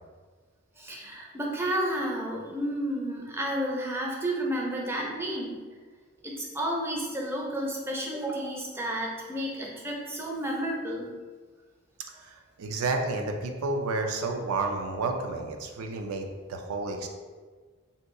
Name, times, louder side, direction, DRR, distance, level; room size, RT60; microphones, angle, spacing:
voice 1, 0.8-5.6 6.2-11.1, right 1 dB, 10° right, -2 dB, 0.4 m, -31 dB
voice 2, 12.2-17.1, right 3 dB, 85° right, 4 dB, 0.4 m, -31 dB
2.7 x 2.3 x 3.7 m, 1.4 s
head